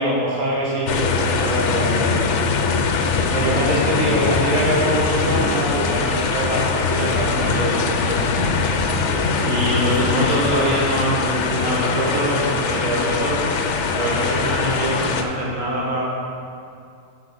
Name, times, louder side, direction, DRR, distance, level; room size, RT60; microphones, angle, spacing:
voice 1, 0.0-2.1 3.3-8.3 9.4-13.4 13.9-16.0, right 1 dB, 60° right, -5 dB, 1.9 m, -24 dB
sound 1, 0.9-15.2, left 4 dB, 60° left, 0.9 m, -22 dB
8.7 x 5.5 x 5.8 m, 2.4 s
omnidirectional pair, 1.5 m